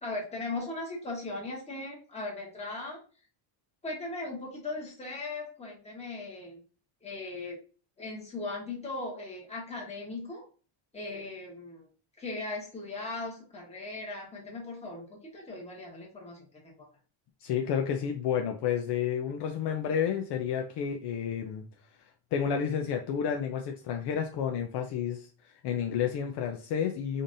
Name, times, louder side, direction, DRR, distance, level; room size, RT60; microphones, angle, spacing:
voice 1, 0.0-3.0 3.8-6.6 7.0-7.6 8.0-10.5 10.9-11.9 12.2-16.9, left 2 dB, 15° left, -3 dB, 1.3 m, -38 dB
voice 2, 17.4-21.6 22.3-27.2, left 8 dB, 60° left, 3 dB, 0.6 m, -30 dB
5.1 x 2.7 x 2.5 m, 0.37 s
cardioid pair, 165°, 48 cm